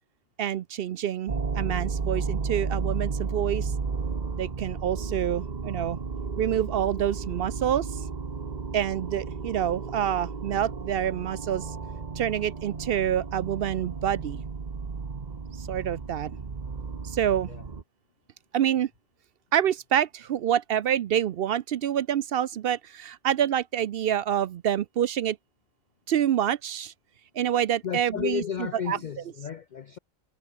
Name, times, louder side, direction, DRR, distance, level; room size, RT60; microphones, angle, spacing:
voice 1, 0.4-3.7 4.4-6.0 6.4-8.1 8.7-11.8 12.2-14.4 15.6-16.3 17.0-17.5 18.5-18.9 19.5-25.4 26.1-26.9 27.3-28.4 28.9-29.0, right 10 dB, 60° right, 0.6 m, -27 dB
sound 1, 1.3-17.8, right 5 dB, 35° right, 1.2 m, -33 dB
voice 2, 27.8-30.0, left 8 dB, 60° left, 0.4 m, -33 dB
omnidirectional pair, 1.4 m